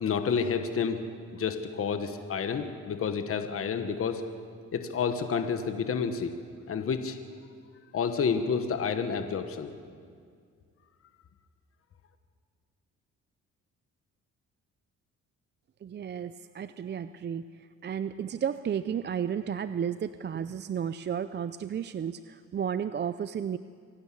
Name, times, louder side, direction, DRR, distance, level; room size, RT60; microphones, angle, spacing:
voice 1, 0.0-1.0 1.3-4.2 4.7-6.3 6.7-7.2 7.9-9.7, left 6 dB, 50° left, 7 dB, 1.3 m, -29 dB
voice 2, 15.8-23.6, right 8 dB, 35° right, 13 dB, 0.5 m, -33 dB
26.0 x 12.0 x 8.4 m, 2.1 s
cardioid pair, 90°, 30 cm